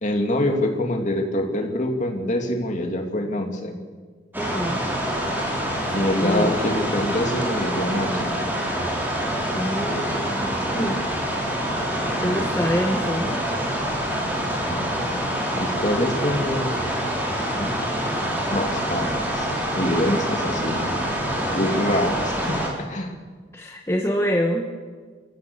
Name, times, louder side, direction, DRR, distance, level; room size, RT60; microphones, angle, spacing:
voice 1, 0.0-3.7 5.9-8.4 14.7-15.1 15.5-16.8 17.5-17.8 18.5-19.5 19.7-20.8 21.5-22.4 22.8-23.1, left 1 dB, 40° left, 3 dB, 3.0 m, -25 dB
sound 1, 4.3-22.7, equal, 10° right, 4.0 m, -26 dB
voice 2, 4.4-4.8 5.9-6.5 9.5-11.0 12.2-13.3 23.5-24.7, equal, 15° left, 1 dB, 1.4 m, -26 dB
29.0 x 15.5 x 7.3 m, 1.5 s
head